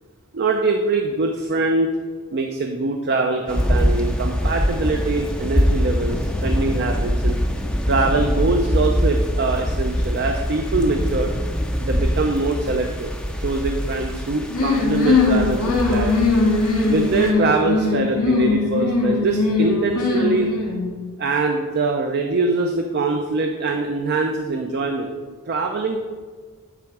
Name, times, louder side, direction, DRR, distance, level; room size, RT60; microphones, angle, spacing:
voice 1, 0.3-1.9 2.3-7.4 7.9-11.3 11.8-13.1 13.4-16.1 16.8-20.5 21.2-25.1 25.5-26.0, right 3 dB, 45° right, 3 dB, 0.5 m, -23 dB
sound 1, 3.5-17.3, equal, 5° left, 0.5 m, -23 dB
sound 2, 14.5-20.9, left 3 dB, 85° left, 2.1 m, -20 dB
10.0 x 3.5 x 4.8 m, 1.5 s
head